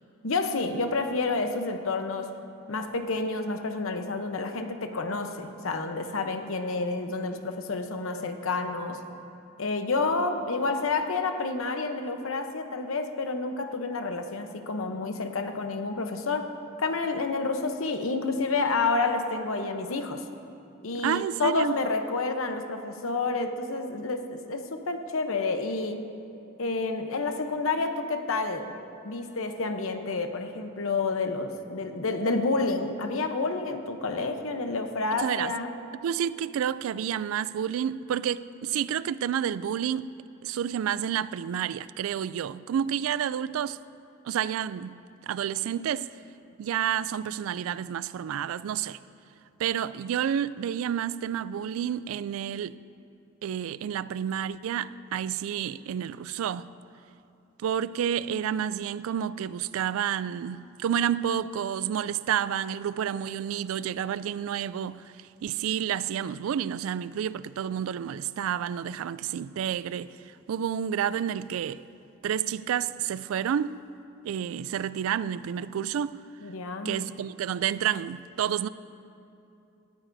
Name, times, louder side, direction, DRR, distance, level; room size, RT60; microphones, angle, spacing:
voice 1, 0.2-2.4 2.7-9.0 9.6-16.5 16.8-20.2 20.8-26.0 26.6-28.8 29.0-35.7 76.4-77.0, left 3 dB, 85° left, 0.8 m, -29 dB
voice 2, 20.9-21.8 35.1-35.5 36.0-40.1 40.4-43.8 44.2-46.1 46.6-49.0 49.6-52.8 53.4-56.7 57.6-65.1 65.4-71.8 72.2-73.8 74.2-76.2 76.8-78.7, right 9 dB, 85° right, 0.3 m, -30 dB
19.0 x 13.0 x 2.7 m
head